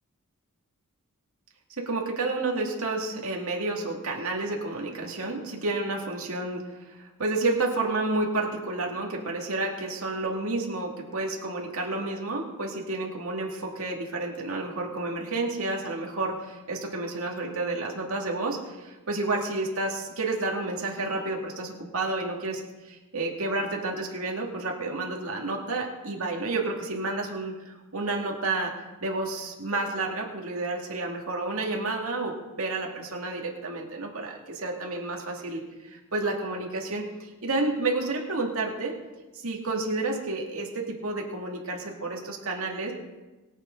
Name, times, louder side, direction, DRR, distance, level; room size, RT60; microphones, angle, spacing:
voice 1, 1.8-28.7 29.0-38.9 39.3-42.9, right 2 dB, 65° right, -1 dB, 2.4 m, -30 dB
22.5 x 8.3 x 3.9 m, 1.2 s
head